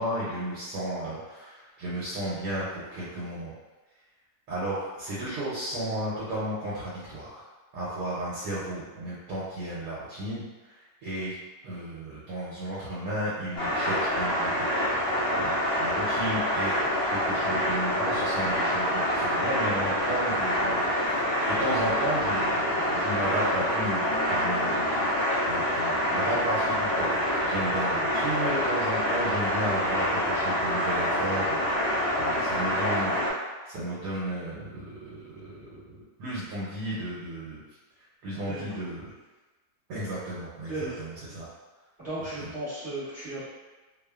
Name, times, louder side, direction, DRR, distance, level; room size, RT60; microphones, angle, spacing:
voice 1, 0.0-3.5 4.5-7.4 7.7-11.4 11.6-14.7 15.3-16.7 17.1-21.1 21.5-24.9 25.5-27.1 27.4-31.7 32.2-35.8 36.2-37.6 38.2-39.1 39.9-41.5 42.4-42.5, right 1 dB, 80° right, -8 dB, 1.2 m, -33 dB
sound 1, 13.6-33.3, equal, 80° left, 0.5 m, -26 dB
voice 2, 42.0-43.5, right 2 dB, 5° right, -17 dB, 0.7 m, -35 dB
2.9 x 2.1 x 2.2 m, 1.2 s
omnidirectional pair, 1.8 m